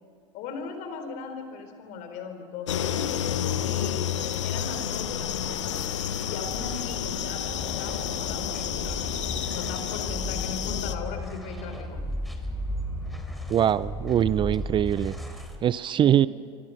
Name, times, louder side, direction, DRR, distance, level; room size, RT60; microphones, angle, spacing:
voice 1, 0.3-3.1 3.6-5.9 6.2-12.0 16.0-16.2, left 5 dB, 55° left, 6 dB, 4.5 m, -38 dB
sound 1, 2.7-10.9, left 10 dB, 80° left, 1.2 m, -30 dB
sound 2, 4.9-15.6, equal, ahead, 3.4 m, -38 dB
sound 3, 7.5-15.5, left 1 dB, 20° left, 6.7 m, -39 dB
voice 2, 13.5-15.1 15.6-16.3, right 10 dB, 30° right, 18 dB, 0.6 m, -22 dB
28.0 x 24.0 x 6.0 m, 2.1 s
hypercardioid pair, 85°, 15 cm